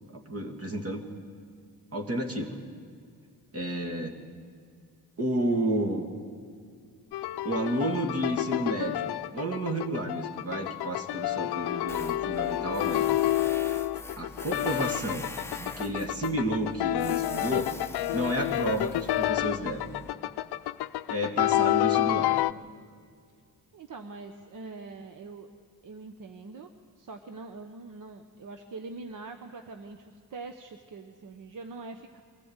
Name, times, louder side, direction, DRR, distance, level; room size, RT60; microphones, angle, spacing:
voice 1, 0.1-1.0 1.9-2.6 3.5-4.2 5.2-6.1 7.4-13.2 14.2-15.3 15.6-17.7 18.1-19.9 21.1-22.3, right 1 dB, 40° right, 4 dB, 2.2 m, -31 dB
sound 1, 7.1-22.5, left 14 dB, 85° left, 0.5 m, -29 dB
Tools, 11.9-20.1, left 2 dB, 5° left, 0.8 m, -44 dB
voice 2, 23.7-25.5 25.8-26.7 27.0-32.2, right 3 dB, 55° right, 6 dB, 1.0 m, -43 dB
23.0 x 14.5 x 8.1 m, 2.2 s
cardioid pair, 100°, 38 cm